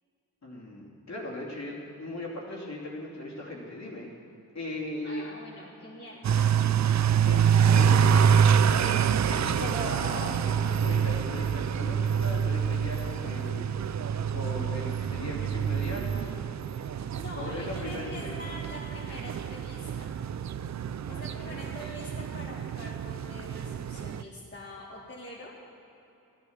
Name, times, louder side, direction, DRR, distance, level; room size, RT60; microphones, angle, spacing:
voice 1, 0.4-4.1 4.5-5.3 7.3-8.3 8.6-14.0 14.3-16.4 17.3-18.6 21.0-21.6, left 1 dB, 45° left, -4 dB, 2.8 m, -38 dB
voice 2, 5.0-6.8 17.1-20.1 21.1-25.5, left 1 dB, 30° left, -6 dB, 2.1 m, -44 dB
sound 1, 6.2-24.2, right 7 dB, 50° right, 0.5 m, -26 dB
13.5 x 11.5 x 7.1 m, 3.0 s
wide cardioid pair, 105°, 37 cm